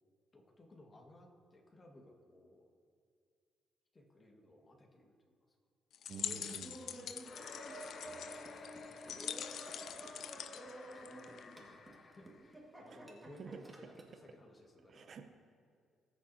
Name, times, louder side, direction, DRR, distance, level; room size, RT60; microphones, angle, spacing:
voice 1, 0.3-2.7 3.9-5.1 5.5-5.6 6.9-7.2 7.9-10.3 10.6-15.3, left 1 dB, 30° left, 1 dB, 1.6 m, -60 dB
sound 1, 5.9-11.6, left 9 dB, 70° left, 0.3 m, -45 dB
Laughter, 6.1-14.2, right 1 dB, 15° right, 1.7 m, -52 dB
voice 2, 6.1-7.1 8.1-8.2 12.9-13.0 13.4-13.6 14.9-15.3, right 6 dB, 50° right, 6 dB, 0.6 m, -50 dB
sound 2, 7.2-12.6, left 4 dB, 50° left, 0.8 m, -53 dB
20.0 x 7.0 x 2.7 m, 2.2 s
cardioid pair, 90°, 0 cm